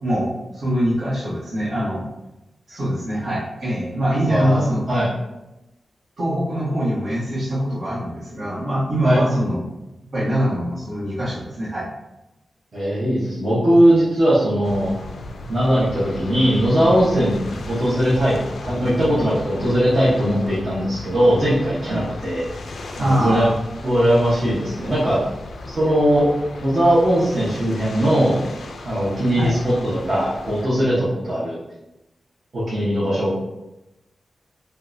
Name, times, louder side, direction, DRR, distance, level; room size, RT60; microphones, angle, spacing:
voice 1, 0.0-2.0 2.7-4.8 6.2-9.6 10.1-11.9 21.9-22.0 23.0-23.5 29.4-29.6, equal, 60° right, -7 dB, 1.2 m, -23 dB
voice 2, 4.2-5.1 9.0-9.2 12.7-15.0 15.5-17.4 17.7-22.5 23.0-23.5 23.8-25.2 25.7-26.3 26.6-28.4 28.8-31.6 32.5-33.4, equal, 40° right, -10 dB, 0.8 m, -19 dB
sound 1, 14.6-30.7, left 2 dB, 80° left, 0.3 m, -36 dB
3.6 x 2.2 x 2.5 m, 0.96 s
wide cardioid pair, 145°, 0 cm